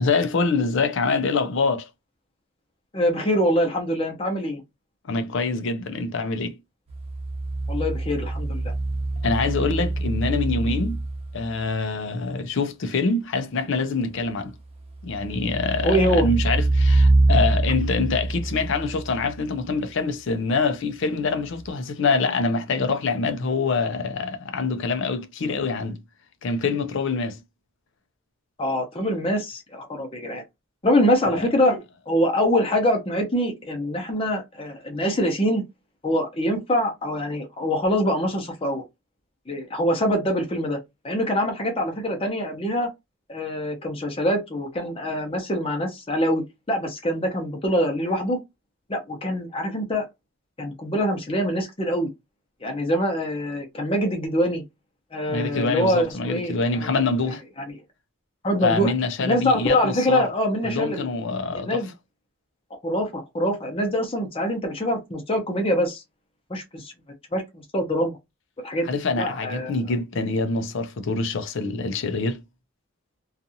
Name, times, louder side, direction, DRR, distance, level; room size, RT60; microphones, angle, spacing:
voice 1, 0.0-1.9 5.1-6.6 9.2-11.0 11.3-14.6 15.0-26.0 26.4-27.4 31.3-31.5 55.3-57.4 58.6-60.3 60.6-61.8 68.8-72.4, left 4 dB, 60° left, 0.5 m, -25 dB
voice 2, 2.9-4.6 7.7-8.7 15.8-16.3 28.6-30.4 30.8-35.6 36.0-38.8 39.5-40.8 41.0-42.9 43.3-48.4 48.9-50.0 50.6-52.1 52.6-54.6 55.1-57.0 57.7-57.8 58.4-58.9 59.2-61.1 61.5-61.9 62.8-66.0 66.5-66.9 67.3-68.2 68.6-68.9 69.2-69.7, equal, 25° left, 0.7 m, -24 dB
sound 1, 6.9-11.5 14.9-19.5 21.6-21.7, right 2 dB, 30° right, 0.7 m, -24 dB
2.6 x 2.4 x 2.7 m
head